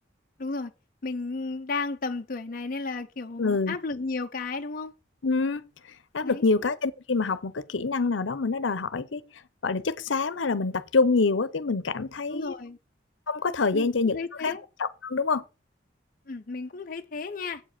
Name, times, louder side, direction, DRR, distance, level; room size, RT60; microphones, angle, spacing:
voice 1, 0.4-0.7 1.0-4.9 6.2-6.4 12.3-12.8 13.7-14.6 16.3-17.6, left 3 dB, 45° left, 0.6 m, -33 dB
voice 2, 3.4-3.8 5.2-5.6 6.1-9.2 9.6-12.6 13.3-14.2 14.4-14.5 14.8-15.4, left 4 dB, 80° left, 0.8 m, -26 dB
8.1 x 5.1 x 6.6 m
head